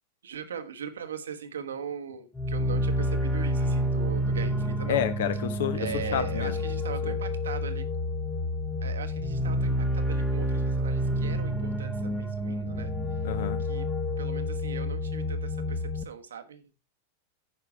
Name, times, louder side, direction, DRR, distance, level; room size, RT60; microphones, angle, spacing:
voice 1, 0.2-5.0 5.8-7.8 8.8-12.9 13.6-13.8 14.2-16.6, right 7 dB, 65° right, 1.2 m, -39 dB
sound 1, 2.4-16.0, equal, 10° left, 1.0 m, -29 dB
voice 2, 4.9-6.6 7.0-7.1 13.2-13.6, left 9 dB, 55° left, 1.1 m, -29 dB
9.8 x 5.9 x 4.6 m
figure-of-eight pair, 90°, 0 cm